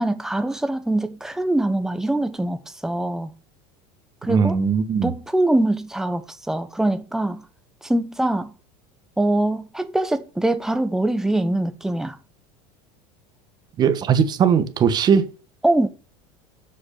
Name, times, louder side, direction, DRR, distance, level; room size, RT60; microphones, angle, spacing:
voice 1, 0.0-3.3 4.2-4.5 5.0-7.4 7.8-8.5 9.2-12.2 15.6-15.9, right 1 dB, 5° right, 1.0 m, -23 dB
voice 2, 4.3-5.1 13.8-15.3, right 7 dB, 30° right, 1.3 m, -19 dB
7.9 x 6.3 x 6.6 m
supercardioid pair, 135°, 13 cm